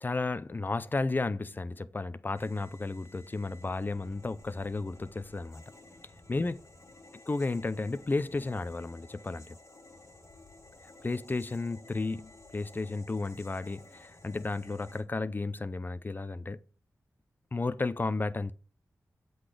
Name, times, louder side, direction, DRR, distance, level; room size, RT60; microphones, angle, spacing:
voice 1, 0.0-5.6 6.3-6.6 7.3-9.6 11.0-16.6 17.5-18.5, left 3 dB, 30° left, 0.5 m, -33 dB
sound 1, 2.4-15.0, left 2 dB, 55° left, 1.8 m, -54 dB
7.9 x 4.0 x 4.9 m
wide cardioid pair, 70°, 6 cm